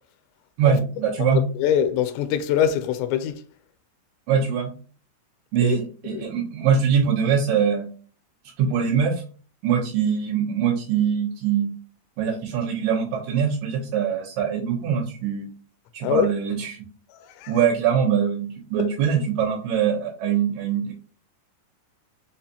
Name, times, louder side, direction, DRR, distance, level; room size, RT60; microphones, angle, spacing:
voice 1, 0.6-1.4 4.3-4.7 5.5-7.9 8.6-9.2 9.6-11.7 12.2-15.5 15.9-16.8 17.5-20.9, right 7 dB, 75° right, 3.3 m, -23 dB
voice 2, 1.3-3.4 5.6-5.8 6.1-6.3 16.0-16.3 17.2-17.5, left 9 dB, 85° left, 2.7 m, -23 dB
7.0 x 2.4 x 2.8 m
omnidirectional pair, 5.2 m